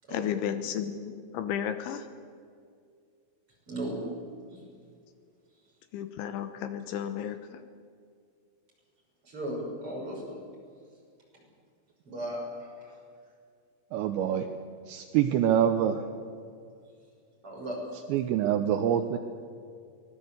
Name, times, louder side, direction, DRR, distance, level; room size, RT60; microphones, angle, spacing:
voice 1, 0.1-2.1 5.9-7.6, left 9 dB, 75° left, 10 dB, 3.2 m, -33 dB
voice 2, 3.7-4.0 4.5-4.6 9.2-10.4 12.1-12.9 17.4-17.8, right 1 dB, 25° right, -2 dB, 7.2 m, -36 dB
voice 3, 13.9-14.5 14.9-16.0 18.1-19.2, right 10 dB, 75° right, 7 dB, 2.9 m, -25 dB
24.0 x 19.0 x 8.1 m, 2.3 s
omnidirectional pair, 5.7 m